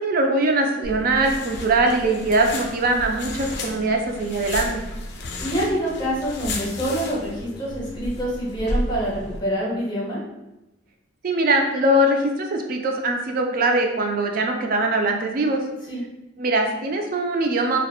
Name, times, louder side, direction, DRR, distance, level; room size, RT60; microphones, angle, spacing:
voice 1, 0.0-4.8 11.2-15.6 16.4-17.8, right 2 dB, 50° right, 3 dB, 0.3 m, -22 dB
sound 1, 0.8-9.4, left 1 dB, 60° left, 0.4 m, -33 dB
voice 2, 5.4-10.2 15.9-16.0, equal, 25° left, -5 dB, 0.7 m, -26 dB
2.8 x 2.1 x 2.3 m, 0.97 s
head